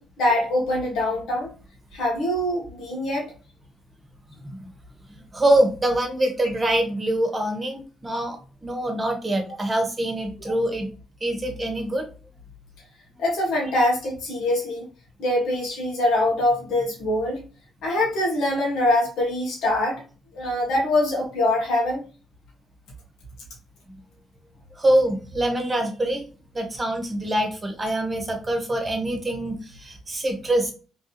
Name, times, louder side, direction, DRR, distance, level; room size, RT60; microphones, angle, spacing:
voice 1, 0.0-1.5 1.9-3.3 13.2-14.9 15.2-17.4 17.8-20.0 20.3-22.0, left 1 dB, 85° left, -2 dB, 1.3 m, -23 dB
voice 2, 5.1-10.9 11.2-12.0 24.8-26.2 26.5-30.7, right 1 dB, 25° right, 4 dB, 1.1 m, -24 dB
3.1 x 2.6 x 2.8 m, 0.36 s
cardioid pair, 90°, 0 cm